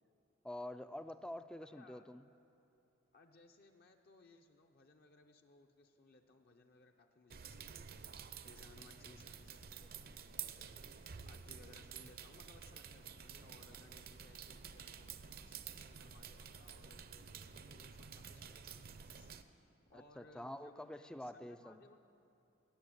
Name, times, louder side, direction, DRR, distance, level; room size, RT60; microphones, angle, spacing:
voice 1, 0.4-2.2 19.9-21.8, left 1 dB, 5° left, 11 dB, 0.3 m, -47 dB
voice 2, 1.7-2.1 3.1-19.4 19.9-22.0, left 3 dB, 50° left, 4 dB, 0.7 m, -64 dB
sound 1, 7.3-19.4, right 7 dB, 50° right, 0.6 m, -51 dB
17.5 x 7.1 x 9.8 m, 2.8 s
head